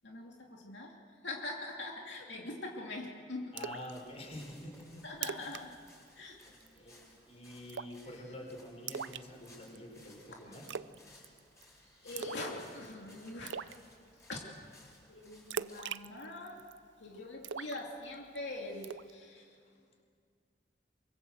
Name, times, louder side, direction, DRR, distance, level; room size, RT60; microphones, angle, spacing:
voice 1, 0.0-0.9 1.2-3.6 5.0-5.7 6.2-6.4 10.3-10.4 12.0-13.6 14.3-14.5 15.1-16.6 17.0-19.5, left 2 dB, 80° left, 0 dB, 2.6 m, -43 dB
voice 2, 3.5-5.0 5.4-5.5 6.4-10.7 19.3-19.8, left 1 dB, 35° left, 2 dB, 4.8 m, -48 dB
Splash splatter, 3.6-3.9 4.3-4.4 4.8-4.9 5.1-5.6 5.9-6.1 6.4-6.8 7.7-8.1 8.9-9.8 10.7-11.0 11.2-11.6 12.2-12.5 12.8-12.9 13.5-13.8 15.5-16.8 17.4-18.4 18.8-19.1, right 7 dB, 90° right, 0.6 m, -40 dB
sound 1, 3.9-15.8, left 1 dB, 15° left, 7.2 m, -61 dB
24.0 x 24.0 x 7.8 m, 2.2 s
head